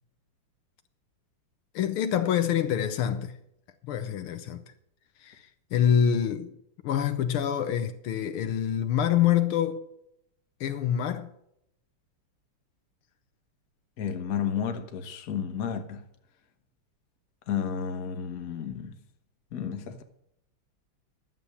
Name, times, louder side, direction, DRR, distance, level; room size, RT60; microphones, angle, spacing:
voice 1, 1.8-3.4 3.8-4.7 5.2-6.6 6.8-9.8 10.6-11.3, left 9 dB, 75° left, 1.6 m, -26 dB
voice 2, 14.0-16.0 17.5-19.0 19.5-20.0, left 7 dB, 50° left, 1.4 m, -32 dB
11.5 x 7.6 x 6.8 m
omnidirectional pair, 2.4 m